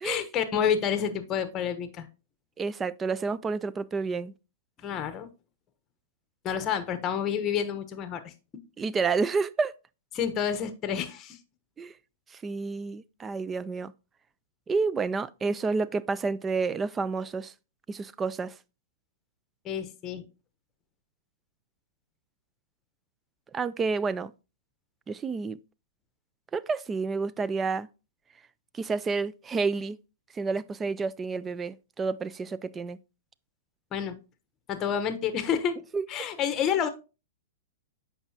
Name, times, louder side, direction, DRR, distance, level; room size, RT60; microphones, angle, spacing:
voice 1, 0.0-2.1 4.8-5.3 6.4-8.3 10.1-11.4 19.6-20.3 33.9-34.1 34.7-35.8 36.1-36.9, left 8 dB, 30° left, 1.0 m, -29 dB
voice 2, 2.6-4.3 8.8-9.7 11.8-11.9 12.3-13.9 14.7-17.5 17.9-18.6 23.5-24.3 25.1-25.6 26.5-27.9 28.7-30.0 30.3-33.0 35.9-36.1, right 4 dB, 15° right, 0.3 m, -29 dB
7.9 x 5.5 x 2.9 m
hypercardioid pair, 125°, 0 cm